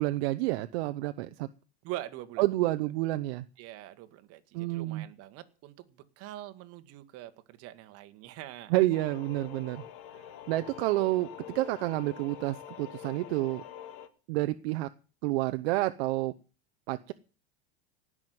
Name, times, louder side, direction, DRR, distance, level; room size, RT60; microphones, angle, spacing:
voice 1, 0.0-1.5 2.4-3.4 4.5-5.1 8.7-9.8 10.5-13.6 14.3-14.9 15.2-16.3 16.9-17.1, right 18 dB, 65° right, 10 dB, 0.8 m, -29 dB
voice 2, 1.8-2.7 3.6-8.7, right 14 dB, 45° right, 9 dB, 1.7 m, -44 dB
sound 1, 8.9-14.1, left 10 dB, 55° left, 1.7 m, -46 dB
18.5 x 6.3 x 9.3 m, 0.38 s
supercardioid pair, 135°, 33 cm